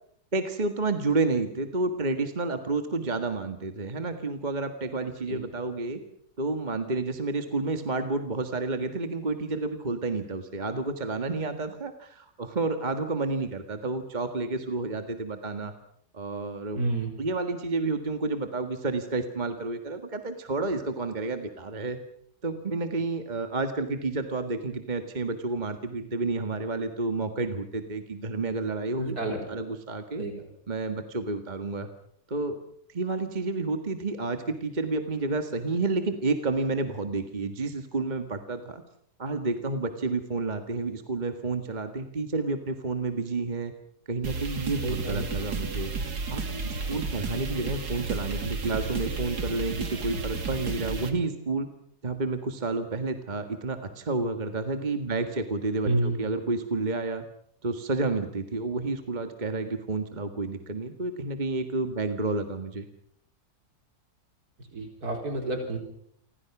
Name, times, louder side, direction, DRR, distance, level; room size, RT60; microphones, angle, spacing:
voice 1, 0.3-6.0 6.4-15.7 16.1-16.8 17.2-22.0 22.4-30.2 30.7-31.9 32.3-32.6 32.9-38.8 39.2-43.7 44.1-45.9 46.3-51.7 52.0-57.2 57.6-62.9, right 3 dB, 30° right, 7 dB, 1.8 m, -30 dB
voice 2, 16.8-17.1 29.0-29.6 30.2-30.3 44.8-45.3 55.9-56.2 64.7-65.8, right 2 dB, 70° right, 3 dB, 4.5 m, -29 dB
sound 1, 44.2-51.1, right 4 dB, 90° right, 2.9 m, -32 dB
29.5 x 24.5 x 6.0 m, 0.70 s
omnidirectional pair, 1.7 m